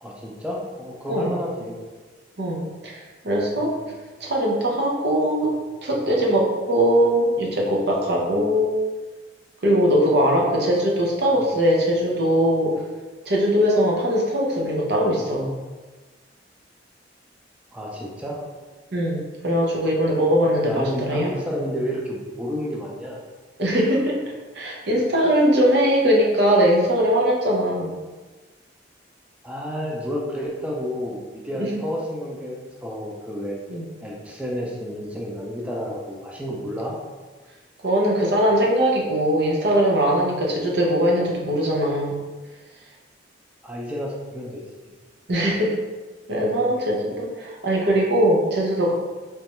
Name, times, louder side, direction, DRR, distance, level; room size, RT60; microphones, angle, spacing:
voice 1, 0.0-1.8 3.6-3.8 11.3-11.5 17.7-18.5 20.7-23.2 29.4-33.6 34.0-37.0 43.6-44.6, equal, 5° right, -3 dB, 0.5 m, -30 dB
voice 2, 2.4-3.8 4.2-8.8 9.6-12.8 13.3-15.6 18.9-21.3 23.6-24.2 24.5-28.0 31.6-31.8 33.7-33.9 37.8-42.2 45.3-45.8 46.3-48.9, equal, 65° right, -1 dB, 0.7 m, -21 dB
3.4 x 3.1 x 2.9 m, 1.3 s
head